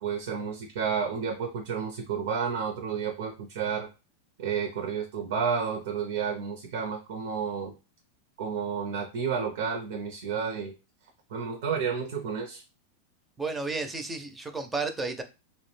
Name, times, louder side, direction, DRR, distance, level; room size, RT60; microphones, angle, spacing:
voice 1, 0.0-3.9 4.4-7.7 8.4-10.7 11.3-12.6, right 6 dB, 70° right, 3 dB, 0.5 m, -31 dB
voice 2, 13.4-15.2, right 3 dB, 10° right, 7 dB, 0.4 m, -32 dB
2.3 x 2.0 x 3.1 m, 0.29 s
supercardioid pair, 140°, 0 cm